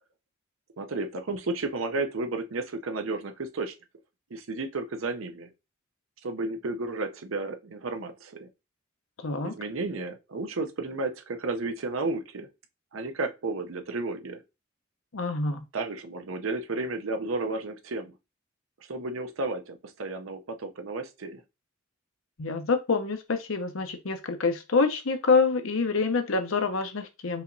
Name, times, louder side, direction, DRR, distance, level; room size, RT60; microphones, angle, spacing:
voice 1, 0.8-3.7 4.3-5.5 6.2-8.5 9.4-12.5 12.9-14.4 15.7-18.1 18.9-21.4, right 3 dB, 85° right, 0.7 m, -32 dB
voice 2, 9.2-9.5 15.1-15.6 22.4-27.4, left 4 dB, 80° left, 0.8 m, -26 dB
4.7 x 3.0 x 2.7 m
head